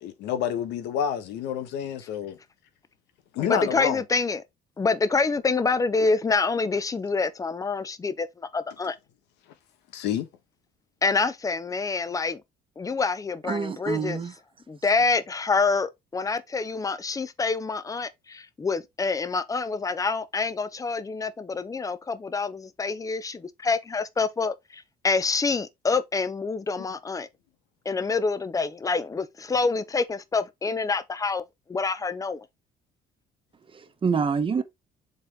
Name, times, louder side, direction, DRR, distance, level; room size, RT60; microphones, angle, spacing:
voice 1, 0.0-2.4 3.3-4.0 9.9-10.3, left 9 dB, 90° left, 1.5 m, -28 dB
voice 2, 3.4-4.4 4.8-9.0 11.0-12.4 12.8-14.2 14.7-27.3 27.8-31.4 31.7-32.4, left 4 dB, 20° left, 0.8 m, -27 dB
voice 3, 13.4-14.3 33.7-34.6, right 5 dB, 30° right, 1.1 m, -27 dB
7.3 x 4.0 x 3.7 m
cardioid pair, 110°, 17 cm